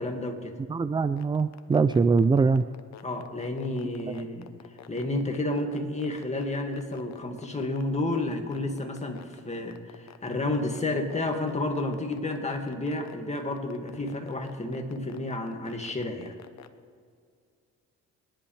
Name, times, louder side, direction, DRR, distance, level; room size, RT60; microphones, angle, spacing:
voice 1, 0.0-0.6 3.0-4.5 4.9-16.3, left 2 dB, 20° left, 3 dB, 2.1 m, -31 dB
voice 2, 0.7-2.6, right 4 dB, 15° right, 13 dB, 0.4 m, -22 dB
sound 1, 1.0-16.7, left 11 dB, 65° left, 1.0 m, -47 dB
26.5 x 10.5 x 3.4 m, 2.2 s
cardioid pair, 90°, 30 cm